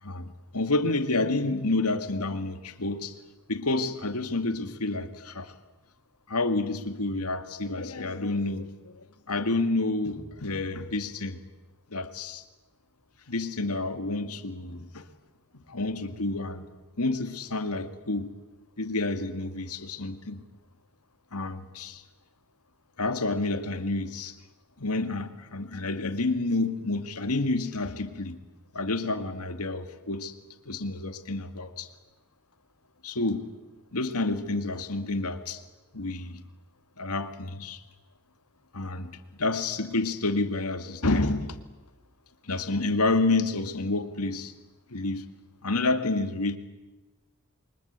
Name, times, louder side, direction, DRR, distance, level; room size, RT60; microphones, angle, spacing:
voice 1, 0.0-3.2 3.5-5.5 6.3-11.4 11.9-12.4 13.3-15.0 15.7-16.7 17.0-18.3 18.8-20.4 21.3-22.0 23.0-24.4 24.8-28.4 28.7-30.3 30.7-31.9 33.0-33.5 33.9-35.6 35.9-36.4 37.0-37.8 38.7-39.1 39.4-41.6 42.4-44.5 44.9-45.2 45.6-46.6, left 2 dB, 90° left, 9 dB, 2.2 m, -29 dB
28.5 x 24.0 x 8.2 m, 1.1 s
head